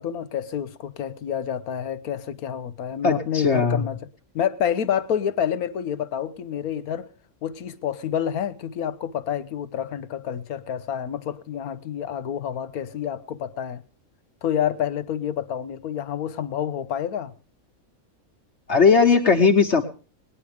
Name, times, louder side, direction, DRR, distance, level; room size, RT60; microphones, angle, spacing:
voice 1, 0.0-4.0 4.3-7.1 7.4-13.8 14.4-17.3, left 9 dB, 85° left, 1.4 m, -28 dB
voice 2, 3.0-3.8 18.7-19.8, left 5 dB, 50° left, 1.4 m, -18 dB
19.5 x 10.0 x 5.0 m
omnidirectional pair, 1.5 m